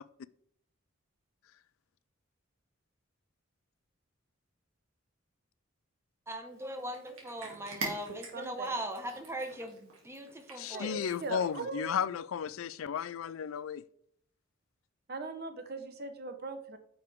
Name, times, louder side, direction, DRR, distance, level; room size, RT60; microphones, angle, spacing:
voice 1, 6.3-10.9, right 1 dB, 10° right, 1.1 m, -40 dB
Cat, 6.5-11.7, right 3 dB, 85° right, 2.6 m, -45 dB
voice 2, 8.1-8.8 10.7-11.8 15.1-16.8, right 3 dB, 50° right, 1.0 m, -40 dB
voice 3, 10.6-13.8, left 7 dB, 80° left, 0.4 m, -34 dB
9.2 x 6.5 x 3.5 m
head